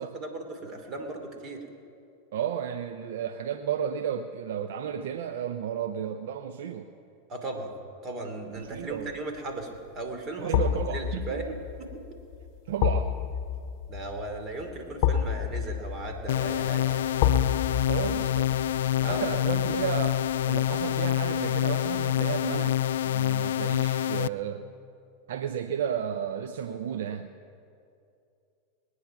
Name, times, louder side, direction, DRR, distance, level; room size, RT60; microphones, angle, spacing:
voice 1, 0.1-1.6 7.3-7.7 8.0-11.5 11.8-11.9 13.9-17.0 19.0-19.4, right 2 dB, 40° right, 4 dB, 2.9 m, -36 dB
voice 2, 2.3-6.9 8.5-9.1 10.4-11.5 12.7-13.2 17.9-18.7 19.0-22.8 23.0-24.7 25.3-27.3, right 9 dB, 70° right, 8 dB, 0.6 m, -33 dB
sound 1, 8.7-9.1 10.5-21.5 21.9-22.0, left 9 dB, 55° left, 0.9 m, -31 dB
sound 2, 16.3-24.3, left 12 dB, 75° left, 0.3 m, -27 dB
20.5 x 9.7 x 5.9 m, 2.6 s
hypercardioid pair, 100°, 0 cm